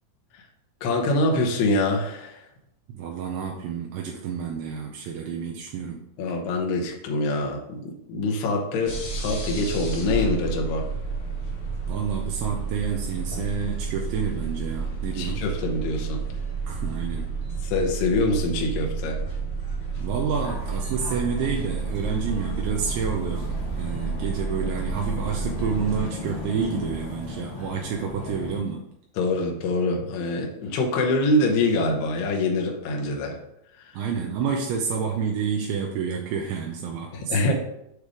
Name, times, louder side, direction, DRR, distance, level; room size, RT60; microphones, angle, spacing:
voice 1, 0.8-2.5 6.2-10.9 15.2-16.2 17.6-19.2 29.2-33.4 33.8-33.9 37.1-37.5, left 2 dB, 75° left, 0 dB, 2.5 m, -25 dB
voice 2, 2.9-6.0 11.9-15.4 16.7-17.3 20.0-28.9 33.9-37.5, right 6 dB, 85° right, 0 dB, 2.7 m, -29 dB
sound 1, 8.9-26.0, right 5 dB, 55° left, 1.3 m, -30 dB
sound 2, 20.3-28.6, left 2 dB, 35° left, 1.3 m, -37 dB
8.3 x 3.2 x 5.0 m, 0.80 s
omnidirectional pair, 5.7 m